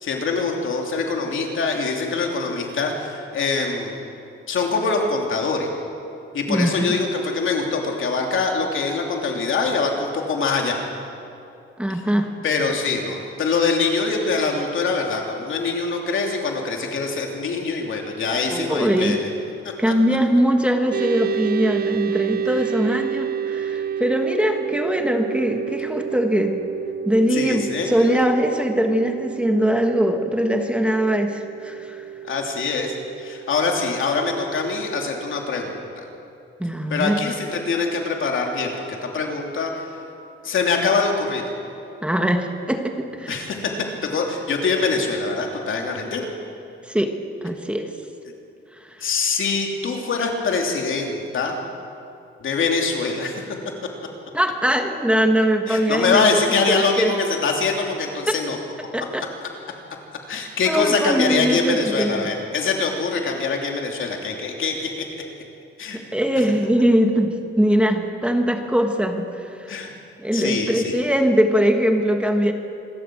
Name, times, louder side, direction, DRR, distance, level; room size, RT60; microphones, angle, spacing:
voice 1, 0.0-4.1 4.5-5.7 6.3-10.8 11.9-12.0 12.4-19.3 19.6-19.9 27.3-28.2 32.2-36.0 36.9-39.9 40.4-41.5 43.3-43.7 44.0-46.3 49.0-51.6 52.4-53.4 55.7-58.6 60.3-65.0 65.8-66.0 69.7-69.9 70.3-71.0, left 4 dB, 70° left, 1 dB, 3.0 m, -24 dB
voice 2, 6.5-7.0 11.8-12.3 18.5-19.2 19.8-26.6 27.0-32.0 36.6-37.2 42.0-43.5 46.9-47.1 47.4-47.9 48.8-49.1 54.3-56.4 56.7-57.1 58.3-58.4 58.9-59.2 60.7-62.3 65.9-69.9 70.2-72.5, equal, 5° right, 4 dB, 1.5 m, -21 dB
sound 1, 20.9-35.7, right 9 dB, 45° right, 0.4 m, -30 dB
26.5 x 13.0 x 7.7 m, 2.7 s
cardioid pair, 130°, 21 cm